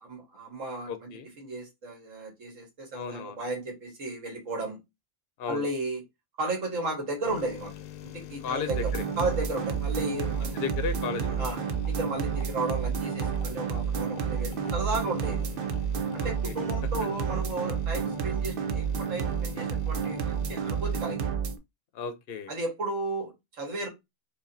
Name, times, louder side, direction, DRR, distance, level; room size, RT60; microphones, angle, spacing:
voice 1, 0.0-1.1 1.4-4.8 5.5-6.0 6.4-7.7 8.0-8.8 9.2-10.6 11.4-15.5 16.1-21.3 22.5-23.9, right 2 dB, 80° right, 1.8 m, -34 dB
voice 2, 0.9-1.3 2.9-3.4 5.4-5.7 8.4-9.1 10.5-11.5 16.2-16.7 21.9-22.5, left 6 dB, 60° left, 0.7 m, -35 dB
sound 1, 7.2-21.2, left 12 dB, 85° left, 1.0 m, -43 dB
sound 2, 8.7-21.6, right 7 dB, 55° right, 0.7 m, -30 dB
4.9 x 2.6 x 2.5 m
omnidirectional pair, 1.3 m